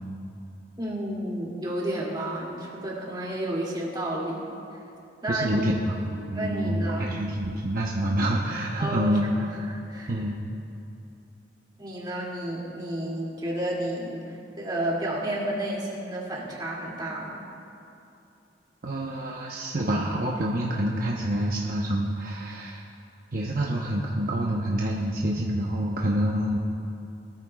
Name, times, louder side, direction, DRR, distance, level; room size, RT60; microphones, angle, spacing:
voice 1, 0.8-4.4 5.2-5.6 6.3-7.2 8.8-10.2 11.8-17.4, right 1 dB, 25° right, -5 dB, 2.5 m, -31 dB
voice 2, 5.3-9.2 10.1-10.4 18.8-22.8 23.3-26.6, right 1 dB, 55° right, -2 dB, 0.9 m, -27 dB
20.0 x 13.5 x 2.4 m, 2.8 s
head